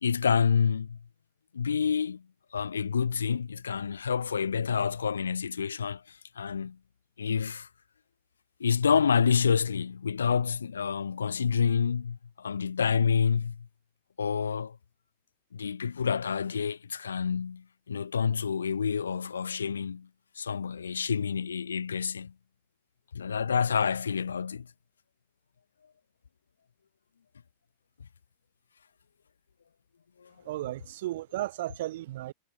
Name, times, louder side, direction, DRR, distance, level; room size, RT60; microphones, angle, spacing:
voice 1, 0.0-1.0 1.5-2.2 2.5-6.0 6.4-6.8 7.2-7.7 8.6-13.7 14.2-14.8 15.5-20.1 20.4-22.3 23.1-24.7 30.2-30.3, left 6 dB, 70° left, 0.8 m, -28 dB
voice 2, 30.4-32.3, right 15 dB, 55° right, 0.9 m, -34 dB
figure-of-eight pair, 90°, 0 cm